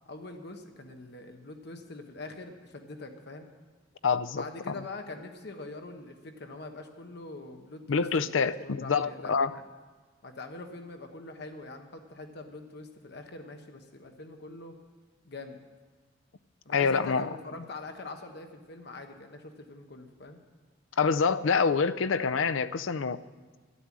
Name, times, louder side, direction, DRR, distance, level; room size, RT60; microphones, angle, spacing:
voice 1, 0.1-3.5 4.3-9.6 10.2-14.8 15.2-15.6 16.6-20.4, left 2 dB, 60° left, 5 dB, 1.1 m, -44 dB
voice 2, 4.0-4.8 7.9-9.5 16.7-17.3 21.0-23.2, left 5 dB, 80° left, 12 dB, 0.5 m, -26 dB
12.5 x 11.0 x 7.3 m, 1.4 s
head